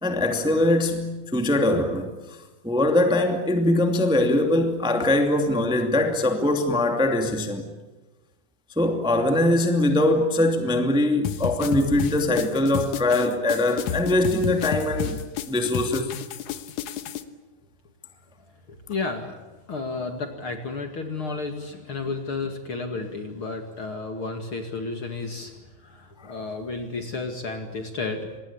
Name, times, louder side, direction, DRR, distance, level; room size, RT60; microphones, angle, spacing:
voice 1, 0.0-2.1 2.6-7.6 8.7-15.2 15.5-16.1 26.2-26.3, left 1 dB, ahead, 1.7 m, -22 dB
sound 1, 11.2-17.2, left 8 dB, 65° left, 2.2 m, -31 dB
voice 2, 18.7-19.4 19.7-28.4, left 3 dB, 40° left, 2.5 m, -32 dB
26.5 x 20.5 x 8.6 m
omnidirectional pair, 4.1 m